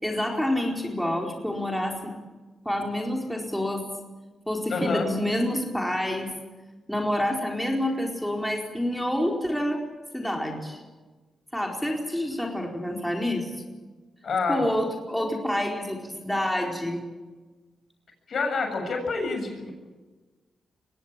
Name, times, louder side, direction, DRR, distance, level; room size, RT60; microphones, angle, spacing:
voice 1, 0.0-2.1 2.6-3.8 4.5-6.3 6.9-9.8 10.1-10.8 11.5-13.5 14.5-17.0, left 1 dB, ahead, 1 dB, 4.4 m, -28 dB
voice 2, 4.7-5.1 14.2-14.6 18.3-19.7, left 4 dB, 60° left, 4 dB, 7.5 m, -27 dB
23.0 x 17.5 x 8.8 m, 1.3 s
cardioid pair, 75°, 0 cm